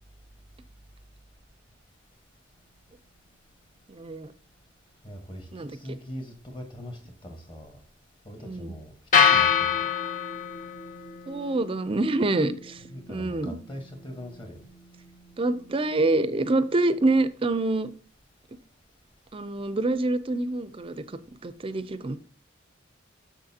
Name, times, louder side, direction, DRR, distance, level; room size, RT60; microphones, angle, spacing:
voice 1, 3.9-4.3 5.5-6.0 8.4-8.7 11.3-12.8 13.1-13.6 15.4-17.9 19.3-20.9 21.4-22.2, right 2 dB, 25° right, 0.4 m, -26 dB
voice 2, 5.0-7.8 8.2-9.9 12.9-14.6, equal, 25° left, 1.3 m, -41 dB
sound 1, 9.1-17.3, left 7 dB, 40° left, 0.8 m, -28 dB
6.5 x 6.5 x 2.7 m
head